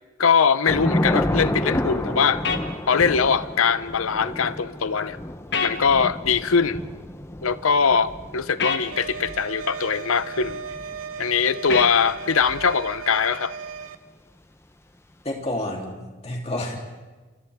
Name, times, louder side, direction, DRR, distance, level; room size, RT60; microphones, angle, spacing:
voice 1, 0.2-2.4 2.9-5.2 5.6-6.8 7.4-10.6 11.2-13.5, left 6 dB, 80° left, 0.7 m, -21 dB
Thunder / Rain, 0.7-13.2, left 1 dB, 10° left, 0.7 m, -31 dB
sound 1, 2.4-2.6 5.5-5.8 8.6-8.8 11.7-12.0, left 5 dB, 55° left, 1.5 m, -24 dB
sound 2, 8.9-14.0, right 6 dB, 75° right, 1.0 m, -36 dB
voice 2, 15.2-16.8, left 1 dB, 30° left, 3.2 m, -29 dB
29.0 x 28.5 x 3.6 m
head